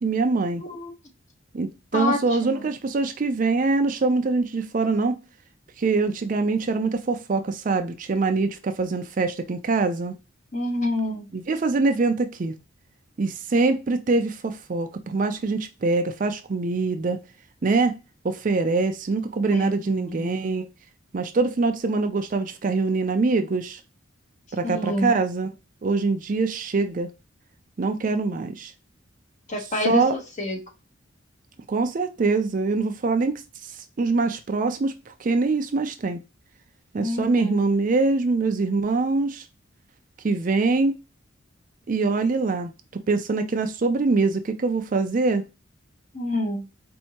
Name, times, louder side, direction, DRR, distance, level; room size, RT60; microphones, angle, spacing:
voice 1, 0.0-0.6 1.5-5.2 5.8-10.2 11.3-12.5 13.2-17.2 17.6-18.0 18.2-20.7 21.1-23.8 24.5-25.5 25.8-27.1 27.8-28.7 29.8-30.1 31.7-36.2 36.9-39.4 40.2-41.0 41.9-42.7 43.1-45.4, right 3 dB, 40° right, 0.4 m, -24 dB
voice 2, 0.6-0.9 1.9-2.7 10.5-11.3 19.5-20.3 24.6-25.1 29.5-30.6 37.0-37.6 46.1-46.6, left 2 dB, 35° left, 1.0 m, -28 dB
4.4 x 2.7 x 2.8 m
head